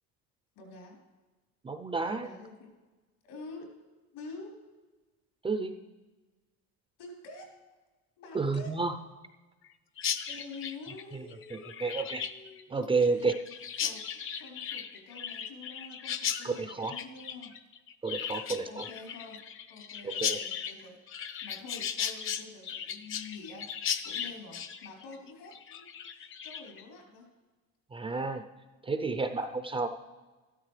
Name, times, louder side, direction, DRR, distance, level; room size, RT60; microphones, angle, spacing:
voice 1, 0.6-1.0 2.1-2.7 3.2-3.8 4.1-4.7 7.0-7.5 8.2-8.8 10.0-13.4 13.8-17.5 18.3-18.4 18.7-19.4 19.7-23.7 24.0-27.3, left 3 dB, 75° left, -1 dB, 4.1 m, -48 dB
voice 2, 1.6-2.3 5.4-5.7 8.3-8.9 10.3-10.4 11.1-12.3 12.7-13.4 16.4-16.9 18.0-18.9 20.0-20.4 27.9-28.4 28.8-29.9, right 4 dB, 15° right, 7 dB, 0.5 m, -31 dB
Chirp tweet, 10.0-26.8, left 8 dB, 35° left, 0.7 m, -37 dB
13.5 x 13.0 x 3.3 m, 1.2 s
cardioid pair, 130°, 35 cm